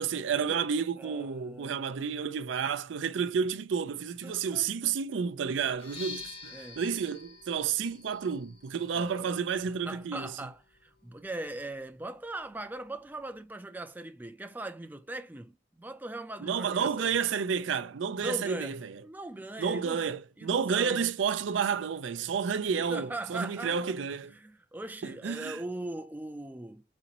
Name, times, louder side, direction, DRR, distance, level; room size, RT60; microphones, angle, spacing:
voice 1, 0.0-10.3 16.4-19.0 19.6-24.3 25.0-25.6, right 6 dB, 75° right, 0.4 m, -31 dB
voice 2, 1.0-1.8 4.2-4.7 6.5-6.8 8.9-9.4 9.9-15.5 15.8-17.1 18.2-20.0 20.4-21.0 22.7-24.0 24.4-26.8, right 2 dB, 10° right, 0.4 m, -40 dB
sound 1, 5.7-13.5, left 4 dB, 30° left, 0.9 m, -50 dB
4.1 x 2.6 x 2.9 m
head